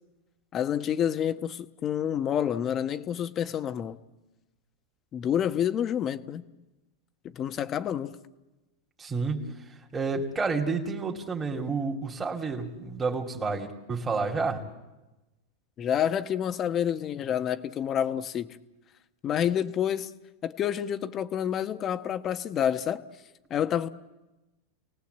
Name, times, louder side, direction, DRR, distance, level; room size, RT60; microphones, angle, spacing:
voice 1, 0.5-4.0 5.1-6.4 7.2-8.2 15.8-18.5 19.2-20.1 20.4-23.0 23.5-23.9, left 9 dB, 35° left, 1.2 m, -28 dB
voice 2, 9.0-9.4 9.9-14.6, right 4 dB, 15° right, 2.8 m, -30 dB
30.0 x 18.5 x 8.2 m
hypercardioid pair, 120°, 0 cm